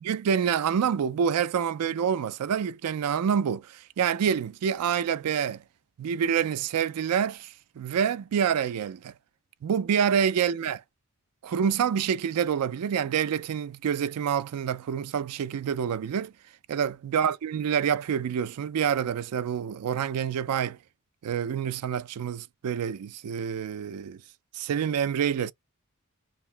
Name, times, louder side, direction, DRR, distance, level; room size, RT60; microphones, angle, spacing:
voice 1, 0.0-5.6 6.0-9.1 9.6-10.8 11.4-16.3 16.7-20.8 21.2-24.2 24.5-25.5, right 8 dB, 85° right, 0.4 m, -27 dB
2.9 x 2.8 x 3.3 m
head